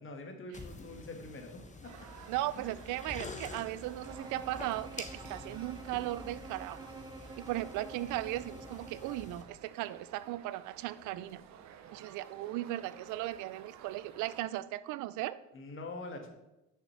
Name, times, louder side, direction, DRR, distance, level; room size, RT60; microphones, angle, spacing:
voice 1, 0.0-2.1 2.5-2.7 15.5-16.3, left 2 dB, 45° left, 4 dB, 1.8 m, -45 dB
sound 1, 0.5-9.4, left 3 dB, 25° left, 1.3 m, -48 dB
sound 2, 1.8-14.4, right 8 dB, 70° right, 1.0 m, -54 dB
voice 2, 2.3-6.9 7.4-11.5 11.9-15.4, right 15 dB, 85° right, 17 dB, 0.5 m, -37 dB
Bowed string instrument, 4.0-9.4, right 3 dB, 15° right, 0.6 m, -49 dB
6.5 x 6.1 x 6.8 m, 0.93 s
cardioid pair, 95°, 30 cm